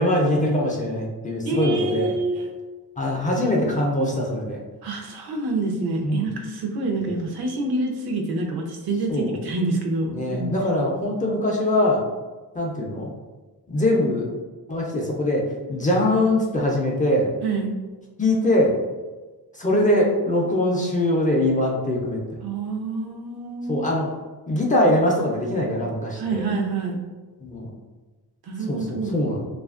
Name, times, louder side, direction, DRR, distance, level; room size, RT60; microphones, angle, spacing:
voice 1, 0.0-2.2 3.0-4.6 6.0-6.2 9.1-9.4 10.1-12.0 12.5-13.1 13.7-14.3 14.7-17.3 18.2-18.8 19.5-22.2 23.7-24.1 24.5-26.4 27.4-27.7 28.7-29.4, left 1 dB, 20° left, -2 dB, 0.4 m, -22 dB
voice 2, 1.4-2.5 4.8-10.5 17.4-17.7 22.4-23.9 26.2-27.0 28.4-29.2, right 3 dB, 75° right, 1 dB, 0.6 m, -27 dB
2.7 x 2.4 x 2.3 m, 1.2 s
wide cardioid pair, 120°, 38 cm